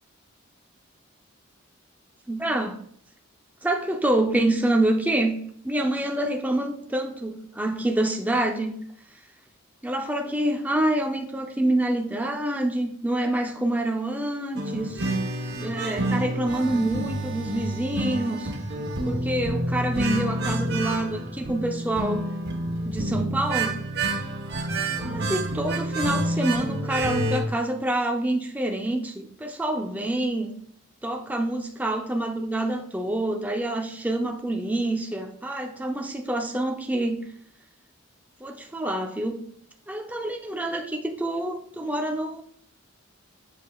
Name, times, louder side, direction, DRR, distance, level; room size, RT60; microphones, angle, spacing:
voice 1, 2.3-2.8 3.6-5.4 5.6-8.8 9.8-15.1 15.6-18.5 19.0-22.2 22.9-23.8 25.0-30.5 31.0-37.2 38.4-39.5 39.9-42.4, right 1 dB, 10° right, 3 dB, 0.6 m, -27 dB
sound 1, 14.6-27.4, right 1 dB, 50° right, 1.1 m, -28 dB
7.5 x 7.3 x 2.4 m, 0.65 s
head